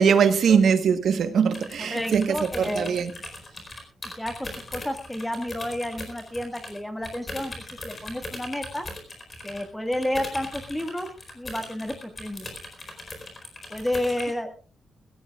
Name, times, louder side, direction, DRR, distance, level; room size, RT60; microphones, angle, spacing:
voice 1, 0.0-3.1, right 6 dB, 60° right, 1.3 m, -21 dB
sound 1, 1.5-6.8 7.0-14.3, left 2 dB, 25° left, 4.4 m, -39 dB
voice 2, 1.8-3.0 4.2-8.9 9.4-11.1 11.3-12.5 13.7-14.5, left 1 dB, 5° left, 1.8 m, -31 dB
21.5 x 17.0 x 2.4 m
wide cardioid pair, 150°, 0 cm